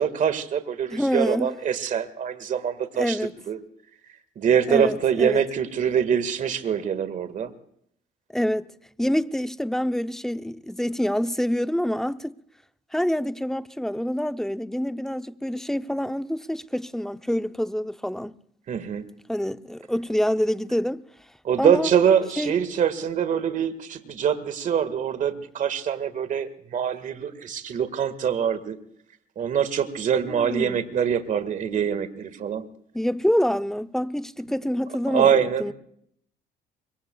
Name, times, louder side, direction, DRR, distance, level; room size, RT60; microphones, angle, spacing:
voice 1, 0.0-3.2 3.5-3.6 4.4-7.5 18.7-19.0 21.4-28.8 29.4-32.6 35.1-35.7, right 8 dB, 50° right, 1.7 m, -24 dB
voice 2, 0.9-1.5 3.0-3.3 4.7-5.4 8.3-8.7 9.0-12.3 12.9-18.3 19.3-21.0 21.6-21.9 22.4-22.5 30.3-30.8 32.9-35.7, equal, 5° left, 0.6 m, -26 dB
25.5 x 23.0 x 2.3 m
cardioid pair, 110°, 17 cm